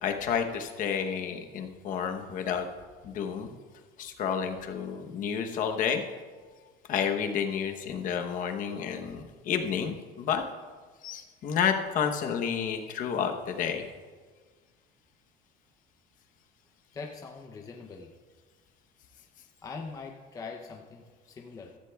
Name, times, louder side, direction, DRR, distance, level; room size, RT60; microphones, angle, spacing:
voice 1, 0.0-2.7 3.0-3.5 4.0-6.0 6.9-10.4 11.0-13.9, left 7 dB, 45° left, 5 dB, 0.9 m, -30 dB
voice 2, 16.9-18.1 19.6-21.8, left 4 dB, 15° left, 2 dB, 0.6 m, -42 dB
15.5 x 13.5 x 2.3 m, 1.5 s
cardioid pair, 165°, 20 cm